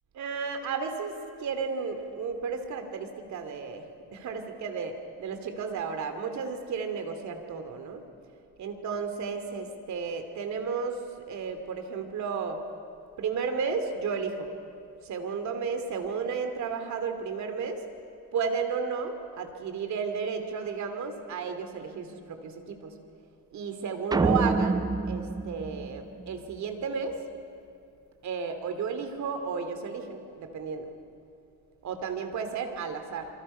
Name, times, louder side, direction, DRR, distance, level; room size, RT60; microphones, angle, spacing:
voice 1, 0.1-3.8 4.1-8.0 8.6-12.6 13.2-14.5 15.0-17.8 18.3-22.9 23.5-27.2 28.2-30.9 31.8-33.3, right 5 dB, 60° right, 7 dB, 2.7 m, -33 dB
sound 1, 24.1-26.6, right 3 dB, 10° right, 0.6 m, -27 dB
27.5 x 24.0 x 5.6 m, 2.4 s
cardioid pair, 135°, 33 cm